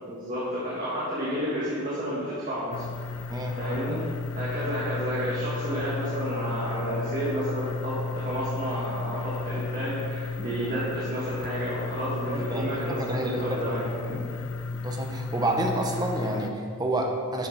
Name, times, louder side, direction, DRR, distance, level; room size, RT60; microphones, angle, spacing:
voice 1, 0.1-2.8 3.6-4.0 4.4-14.3, equal, 40° right, -8 dB, 1.7 m, -31 dB
sound 1, 2.7-16.5, left 3 dB, 70° left, 0.5 m, -34 dB
voice 2, 12.3-13.8 14.1-14.2 14.7-17.5, right 1 dB, 20° right, 1 dB, 0.8 m, -29 dB
11.0 x 6.6 x 4.0 m, 2.3 s
head